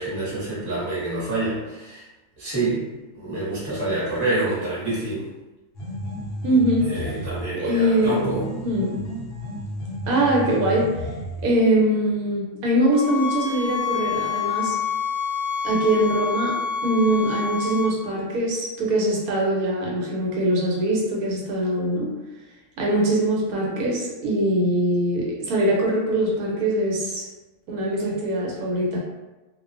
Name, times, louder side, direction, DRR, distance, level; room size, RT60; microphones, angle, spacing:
voice 1, 0.0-2.1 2.4-2.9 3.1-5.3 6.9-8.5, right 2 dB, 20° right, -8 dB, 0.8 m, -27 dB
sound 1, 5.7-7.6 8.0-11.6, equal, 80° left, 0.5 m, -32 dB
voice 2, 6.4-7.1 7.5-8.3 8.6-9.0 10.1-11.0 11.4-14.8 15.6-22.1 22.8-27.2 27.7-29.0, right 1 dB, 80° right, -3 dB, 1.1 m, -22 dB
sound 2, 12.9-17.9, left 6 dB, 60° right, 0.9 m, -27 dB
2.4 x 2.2 x 2.4 m, 1.1 s
omnidirectional pair, 1.6 m